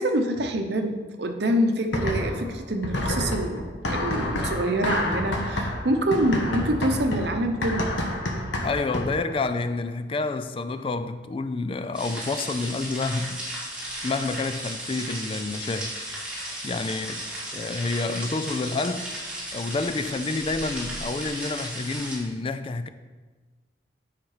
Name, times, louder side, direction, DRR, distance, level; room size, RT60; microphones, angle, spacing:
voice 1, 0.0-7.9, right 1 dB, 60° right, 0.9 m, -26 dB
sound 1, 1.9-2.5 2.8-9.3, left 1 dB, 80° left, 1.3 m, -28 dB
voice 2, 8.6-13.4 14.0-15.9 16.6-17.2 17.5-19.1 19.5-22.9, left 3 dB, 30° left, 0.3 m, -29 dB
sound 2, 11.9-22.2, right 1 dB, 5° right, 2.1 m, -35 dB
9.2 x 5.8 x 4.9 m
head